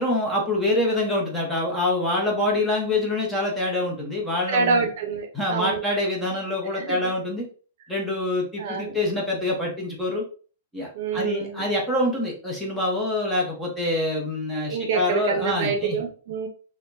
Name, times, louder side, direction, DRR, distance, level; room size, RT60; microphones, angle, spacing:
voice 1, 0.0-4.8 5.3-7.4 7.9-10.2 10.7-16.0, left 1 dB, ahead, -3 dB, 0.9 m, -25 dB
voice 2, 4.5-5.8 6.7-7.1 8.6-9.0 10.9-11.7 14.6-16.5, right 5 dB, 55° right, 4 dB, 0.7 m, -26 dB
4.2 x 2.2 x 2.6 m, 0.39 s
hypercardioid pair, 160°, 0 cm